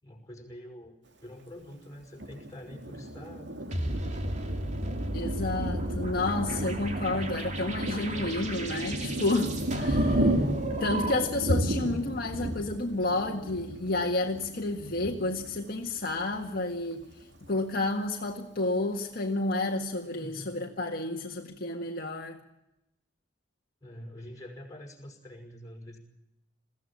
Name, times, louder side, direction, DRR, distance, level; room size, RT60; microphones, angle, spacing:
voice 1, 0.0-4.8 6.6-7.1 20.2-20.6 23.8-26.0, left 1 dB, 20° left, 0 dB, 5.6 m, -46 dB
Thunder, 2.2-16.5 17.0-17.1 17.4-18.0, right 1 dB, 75° right, 2.3 m, -33 dB
sound 1, 3.7-11.5, right 1 dB, 40° right, 2.6 m, -34 dB
voice 2, 5.1-10.4 10.8-17.0 17.5-22.4, left 2 dB, 55° left, 1 dB, 1.7 m, -31 dB
22.0 x 16.0 x 8.8 m, 0.89 s
head